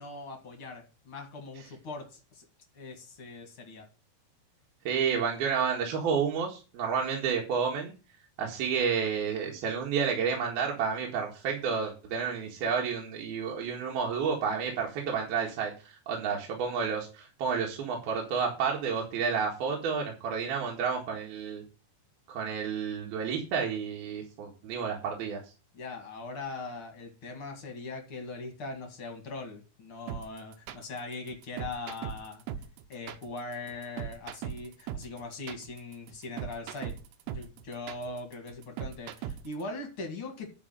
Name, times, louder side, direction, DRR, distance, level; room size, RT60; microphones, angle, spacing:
voice 1, 0.0-2.5 2.7-3.9 16.2-16.4 25.7-32.4 32.9-36.9 37.3-40.5, left 3 dB, 40° left, 4 dB, 2.0 m, -41 dB
voice 2, 4.8-7.9 8.4-21.6 22.3-25.4, right 6 dB, 60° right, 0 dB, 3.3 m, -30 dB
sound 1, 30.1-39.6, right 9 dB, 75° right, 2.9 m, -39 dB
11.0 x 4.9 x 7.8 m, 0.33 s
omnidirectional pair, 5.2 m